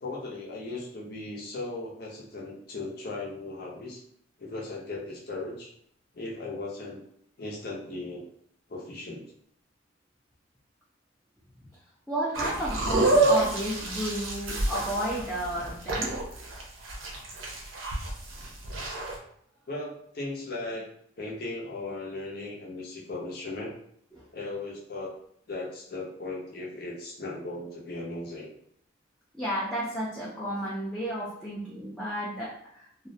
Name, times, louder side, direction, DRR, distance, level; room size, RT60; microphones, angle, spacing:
voice 1, 0.0-4.0 4.4-5.7 6.1-7.0 7.4-8.2 8.7-9.2 19.7-20.9 21.2-23.8 24.3-25.1 25.5-28.5, left 2 dB, 50° left, -3 dB, 0.6 m, -37 dB
voice 2, 12.1-16.1 24.1-24.2 29.3-33.1, equal, 5° left, -8 dB, 0.4 m, -32 dB
sound 1, 12.4-19.2, right 2 dB, 80° right, 0.5 m, -28 dB
2.4 x 2.0 x 2.6 m, 0.68 s
head